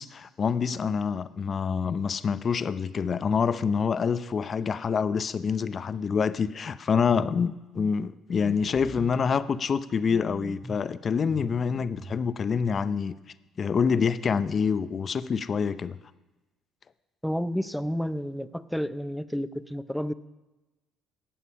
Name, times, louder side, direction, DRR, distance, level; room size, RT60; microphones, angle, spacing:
voice 1, 0.0-13.2 13.6-16.0, left 6 dB, 45° left, 0.6 m, -26 dB
sound 1, 7.1-7.4 7.8-7.9 8.4-9.2 10.1-10.8 11.3-12.2, right 2 dB, 25° right, 1.6 m, -42 dB
voice 2, 17.2-20.1, equal, ahead, 0.6 m, -30 dB
18.5 x 7.3 x 5.6 m
supercardioid pair, 75°, 0 cm